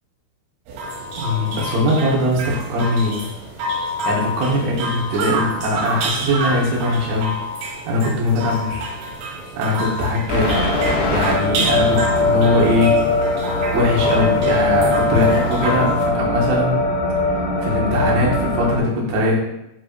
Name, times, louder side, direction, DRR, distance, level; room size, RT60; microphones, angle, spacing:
sound 1, 0.7-16.0, equal, 85° right, 4.0 m, -28 dB
voice 1, 1.2-3.3 4.1-7.3 7.6-8.9 9.6-10.5 11.1-13.1 13.7-16.8 17.6-19.4, left 1 dB, 70° right, -3 dB, 3.6 m, -20 dB
sound 2, 10.3-18.8, left 2 dB, 80° left, 4.8 m, -20 dB
10.0 x 4.6 x 2.6 m, 0.84 s
omnidirectional pair, 5.8 m